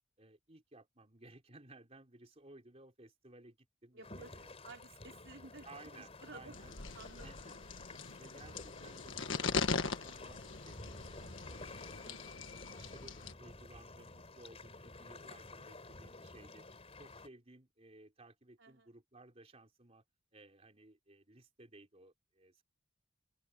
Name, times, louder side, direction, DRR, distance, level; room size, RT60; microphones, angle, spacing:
voice 1, 0.2-3.6 3.8-4.5 5.7-6.7 7.2-7.5 8.2-12.2 12.7-16.7 17.0-20.0 20.3-22.6, right 2 dB, 30° right, 3.7 m, -58 dB
voice 2, 3.9-4.3 4.6-6.6 7.0-7.3 12.0-12.3 18.6-18.9, right 3 dB, 60° right, 5.2 m, -54 dB
sound 1, 4.0-17.3, left 2 dB, 30° left, 4.3 m, -52 dB
sound 2, 6.5-13.3, left 4 dB, 65° left, 1.6 m, -40 dB
head